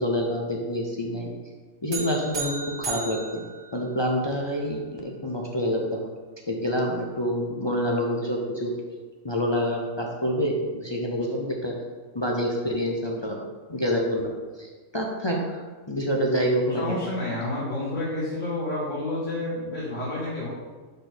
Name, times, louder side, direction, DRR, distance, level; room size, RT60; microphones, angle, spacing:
voice 1, 0.0-1.3 1.8-3.4 3.7-6.1 6.5-9.0 9.2-11.7 12.1-13.4 13.7-15.6 15.9-17.0, equal, 30° left, -2 dB, 0.5 m, -27 dB
sound 1, 1.9-4.4, right 4 dB, 65° right, 1.7 m, -35 dB
voice 2, 16.8-20.5, left 2 dB, 80° left, -11 dB, 2.4 m, -29 dB
5.3 x 4.1 x 6.0 m, 1.4 s
omnidirectional pair, 1.3 m